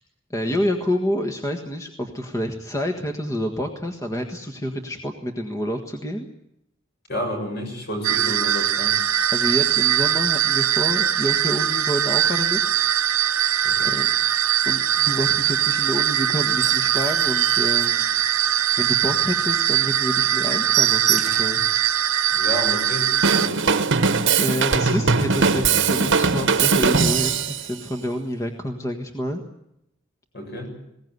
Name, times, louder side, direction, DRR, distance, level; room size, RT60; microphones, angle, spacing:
voice 1, 0.3-6.3 9.3-12.6 13.9-14.1 14.6-18.0 18.8-21.6 24.4-29.4, equal, 15° left, 5 dB, 1.5 m, -28 dB
voice 2, 7.1-9.0 13.6-13.9 22.3-24.0 30.3-30.7, equal, 55° left, 3 dB, 7.3 m, -31 dB
sound 1, 8.0-23.5, right 10 dB, 85° right, 1.0 m, -21 dB
sound 2, 16.4-18.6 19.0-19.2 19.5-19.6 19.9-20.1 20.3-21.7 22.1-22.2 22.6-22.7 22.9-23.4 24.2-24.3, right 10 dB, 35° right, 0.8 m, -28 dB
Drum kit / Drum, 23.2-27.6, right 5 dB, 65° right, 1.2 m, -20 dB
20.5 x 17.5 x 9.5 m, 0.81 s
head